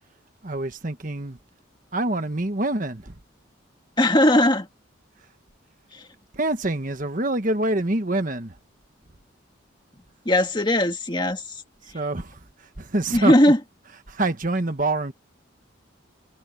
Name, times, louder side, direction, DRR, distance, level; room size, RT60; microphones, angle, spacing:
voice 1, 0.4-1.4 1.9-3.2 6.3-8.6 11.8-13.3 14.1-15.1, right 2 dB, 40° right, 1.4 m, -26 dB
voice 2, 4.0-4.7 5.9-6.0 10.3-11.4 13.1-13.6, left 1 dB, 25° left, 2.0 m, -18 dB
head